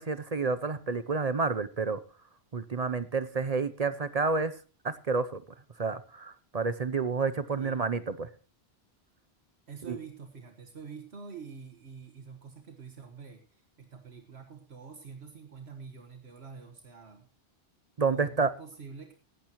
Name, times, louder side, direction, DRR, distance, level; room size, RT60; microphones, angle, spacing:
voice 1, 0.0-2.0 2.5-4.5 4.8-5.4 5.8-8.3 9.9-10.0 18.0-18.5, right 4 dB, 40° right, 14 dB, 0.7 m, -29 dB
voice 2, 7.5-7.9 9.7-13.4 13.8-17.3 18.1-19.1, right 6 dB, 75° right, 5 dB, 1.8 m, -46 dB
17.0 x 12.0 x 3.0 m, 0.36 s
omnidirectional pair, 1.1 m